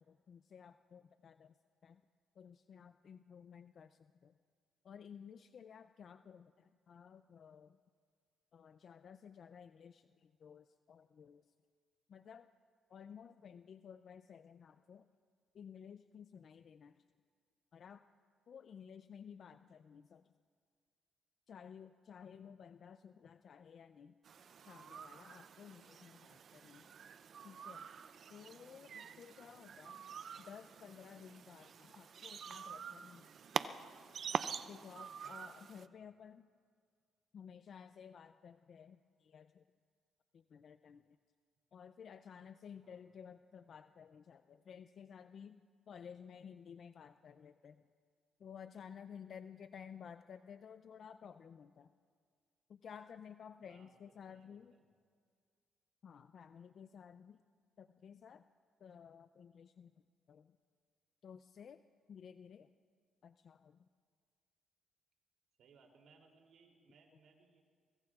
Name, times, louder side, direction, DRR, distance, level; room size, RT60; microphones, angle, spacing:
voice 1, 0.0-1.5 1.8-2.0 2.4-4.3 4.8-7.8 8.5-11.4 12.1-12.5 12.9-15.1 15.5-17.0 17.7-18.0 18.5-20.3 21.5-24.1 24.7-26.9 27.4-27.9 28.3-30.0 30.4-33.3 34.7-36.4 37.3-39.6 40.3-41.2 41.7-47.8 48.4-51.9 52.7-54.7 56.0-57.4 57.8-58.4 58.8-59.9 60.3-60.6 61.2-61.8 62.1-62.7 63.2-63.9, left 7 dB, 55° left, 10 dB, 0.4 m, -55 dB
sound 1, 24.2-35.9, right 7 dB, 55° right, 0.5 m, -46 dB
voice 2, 29.3-29.8 35.9-36.1 42.8-43.0 53.7-54.0 54.3-54.9 65.6-67.6, right 4 dB, 70° right, 1 dB, 2.9 m, -67 dB
24.0 x 23.5 x 2.4 m, 2.1 s
cardioid pair, 90°, 0 cm